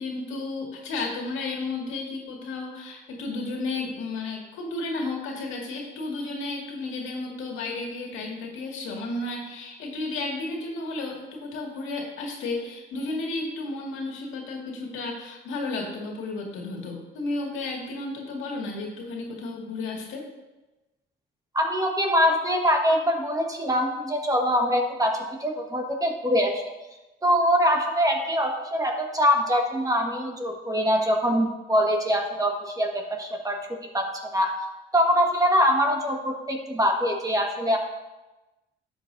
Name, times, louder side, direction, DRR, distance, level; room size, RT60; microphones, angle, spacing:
voice 1, 0.0-20.3, left 3 dB, 90° left, -1 dB, 2.0 m, -33 dB
voice 2, 21.5-26.6 27.2-33.6 33.9-34.5 34.9-37.8, equal, 20° right, 2 dB, 1.4 m, -23 dB
11.5 x 7.6 x 2.6 m, 1.1 s
cardioid pair, 90°, 20 cm